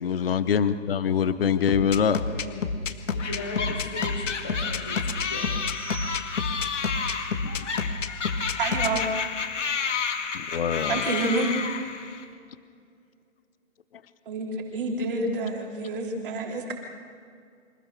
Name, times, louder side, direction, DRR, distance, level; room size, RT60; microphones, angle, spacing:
voice 1, 0.0-2.2 10.3-11.1, left 7 dB, 50° left, 13 dB, 0.8 m, -24 dB
voice 2, 1.2-1.9 2.2-5.5 7.4-7.7, left 2 dB, 10° left, -1 dB, 0.6 m, -38 dB
sound 1, 1.7-9.0, left 5 dB, 90° left, 1.8 m, -29 dB
sound 2, 3.2-12.2, left 6 dB, 70° left, 2.7 m, -31 dB
sound 3, 5.2-6.7, right 6 dB, 5° right, 1.9 m, -44 dB
voice 3, 8.6-9.0 10.9-11.5 14.3-16.7, right 3 dB, 45° right, 0 dB, 3.8 m, -28 dB
26.0 x 15.0 x 6.8 m, 2.2 s
hypercardioid pair, 170°, 37 cm